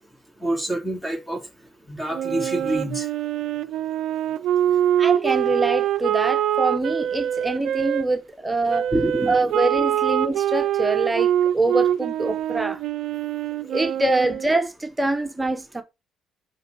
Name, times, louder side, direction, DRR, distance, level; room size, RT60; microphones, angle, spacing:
voice 1, 0.4-1.4 1.9-3.1 8.9-9.5, right 1 dB, 15° left, 2.8 m, -26 dB
Wind instrument woodwind instrument, 2.1-8.0 8.7-14.5, right 11 dB, 65° right, 0.5 m, -24 dB
voice 2, 5.0-8.9 9.3-12.8 13.6-15.8, right 2 dB, 15° right, 1.2 m, -24 dB
5.6 x 5.4 x 4.6 m
hypercardioid pair, 50°, 0 cm